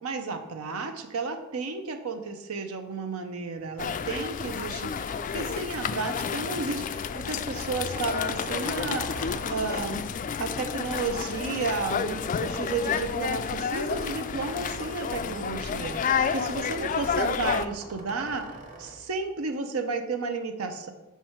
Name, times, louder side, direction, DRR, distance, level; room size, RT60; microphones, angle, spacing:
voice 1, 0.0-9.1 9.5-10.0 10.4-18.4 18.8-20.9, right 4 dB, 70° right, 6 dB, 0.6 m, -32 dB
sound 1, 3.6-4.9 5.3-6.0 7.6-10.0 12.5-14.0 14.6-15.8 17.3-19.2, right 1 dB, 35° right, 1.2 m, -46 dB
sound 2, 3.8-17.7, left 6 dB, 40° left, 0.3 m, -30 dB
5.9 x 5.6 x 4.4 m, 1.0 s
head